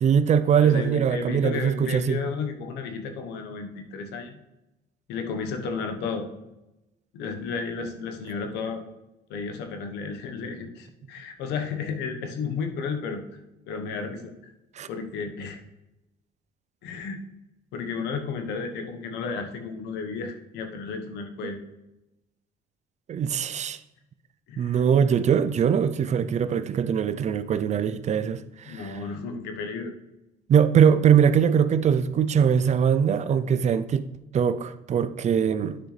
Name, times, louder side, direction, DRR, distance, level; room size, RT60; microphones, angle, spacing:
voice 1, 0.0-2.2 14.8-14.9 23.1-23.8 24.6-29.0 30.5-34.1 34.3-35.8, right 7 dB, 45° right, 0.5 m, -22 dB
voice 2, 0.6-4.4 5.1-6.2 7.1-8.8 9.3-13.2 13.7-14.3 14.9-15.6 16.8-17.2 17.7-21.6 24.5-24.8 28.6-29.9, left 5 dB, 85° left, 1.2 m, -33 dB
9.6 x 6.2 x 3.3 m
cardioid pair, 110°, 17 cm